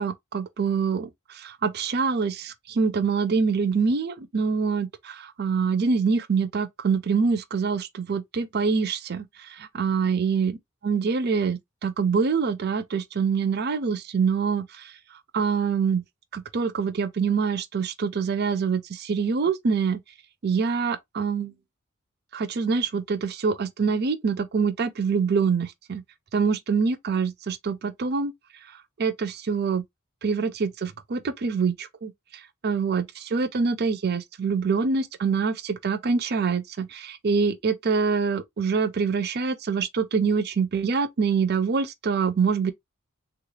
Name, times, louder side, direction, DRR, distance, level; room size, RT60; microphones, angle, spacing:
voice 1, 0.0-9.3 9.6-10.6 10.8-14.9 15.3-16.0 16.3-20.0 20.4-21.5 22.3-26.0 26.3-28.3 29.0-29.8 30.2-32.1 32.6-42.7, right 5 dB, 50° right, 0.5 m, -25 dB
3.4 x 2.4 x 3.1 m
head